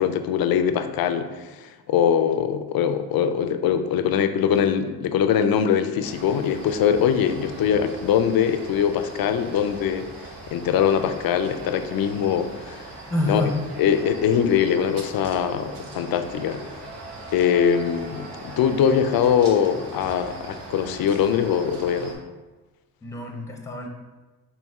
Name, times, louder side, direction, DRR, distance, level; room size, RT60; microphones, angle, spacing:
voice 1, 0.0-10.1 10.5-12.9 13.3-13.4 13.8-16.6 17.3-22.2, left 8 dB, 60° left, 9 dB, 0.5 m, -22 dB
sound 1, 6.0-22.1, right 2 dB, 80° right, 0.9 m, -40 dB
voice 2, 13.1-13.6 23.0-23.9, left 2 dB, 5° left, 2 dB, 0.7 m, -27 dB
4.2 x 2.8 x 3.5 m, 1.2 s
supercardioid pair, 60°, 41 cm